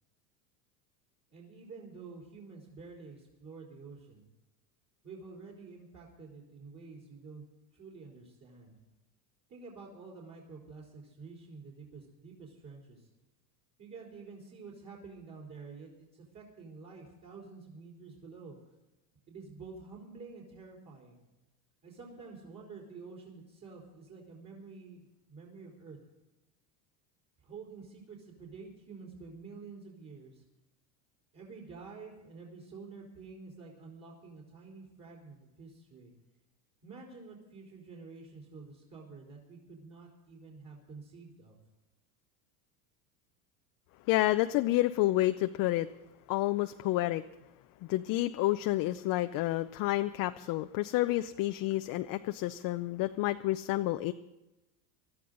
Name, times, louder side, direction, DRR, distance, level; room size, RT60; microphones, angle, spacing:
voice 1, 1.3-4.2 5.0-7.4 7.7-8.7 9.5-13.1 13.8-18.6 19.3-21.2 21.8-26.0 27.4-30.4 31.3-36.1 36.8-41.6, right 4 dB, 35° right, -2 dB, 4.0 m, -49 dB
voice 2, 44.1-45.9 46.3-47.2 47.8-54.1, left 16 dB, 45° left, 8 dB, 0.6 m, -29 dB
20.0 x 13.0 x 3.9 m, 1.0 s
supercardioid pair, 115°, 48 cm